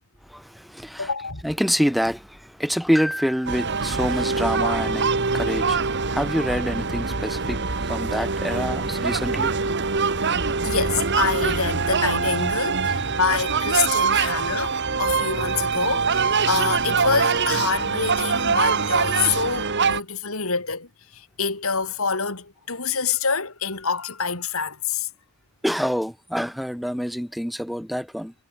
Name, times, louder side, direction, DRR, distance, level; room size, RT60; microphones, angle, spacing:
voice 1, 0.3-1.1 1.4-5.8 6.1-9.7 25.6-28.3, equal, ahead, 1.8 m, -26 dB
voice 2, 1.0-1.4 10.2-10.4 10.6-20.9 21.1-25.1, left 5 dB, 75° left, 4.4 m, -26 dB
sound 1, 3.5-20.0, right 5 dB, 55° right, 2.2 m, -24 dB
head